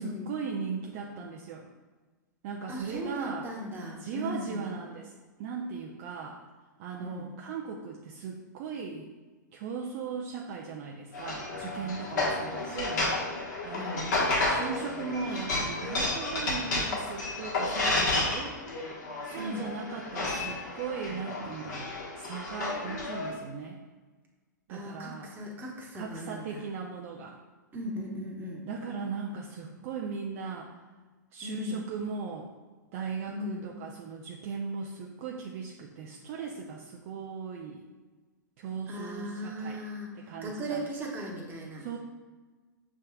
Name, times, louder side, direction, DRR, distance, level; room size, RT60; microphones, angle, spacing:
voice 1, 0.0-1.7 2.4-3.5 4.0-5.1 5.4-6.4 6.8-9.1 9.5-13.1 13.4-18.6 19.2-23.8 24.7-25.3 25.9-27.4 28.7-30.7 31.3-32.5 32.9-37.8 38.6-39.8 40.1-40.8 41.8-42.0, right 5 dB, 45° right, -1 dB, 0.5 m, -38 dB
voice 2, 2.7-4.7 7.0-7.3 13.7-14.4 19.3-19.7 24.7-26.6 27.7-28.6 31.4-31.9 33.3-33.7 38.9-40.1 40.4-41.8, equal, 20° right, -2 dB, 1.0 m, -37 dB
sound 1, 11.1-23.3, left 2 dB, 65° left, 1.3 m, -31 dB
6.4 x 3.5 x 2.3 m, 1.3 s
figure-of-eight pair, 105°, 10 cm